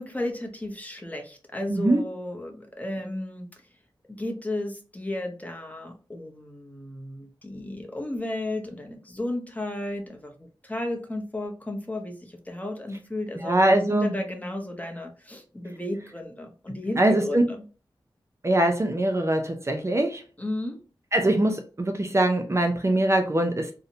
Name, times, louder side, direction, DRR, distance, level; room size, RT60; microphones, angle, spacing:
voice 1, 0.0-3.6 4.1-17.6 20.4-20.8, left 1 dB, 20° left, 3 dB, 0.6 m, -34 dB
voice 2, 1.7-2.0 13.4-14.2 16.9-17.4 18.4-20.2 21.1-23.7, right 1 dB, 35° right, 5 dB, 0.4 m, -22 dB
2.6 x 2.0 x 2.6 m, 0.36 s
wide cardioid pair, 60°, 8 cm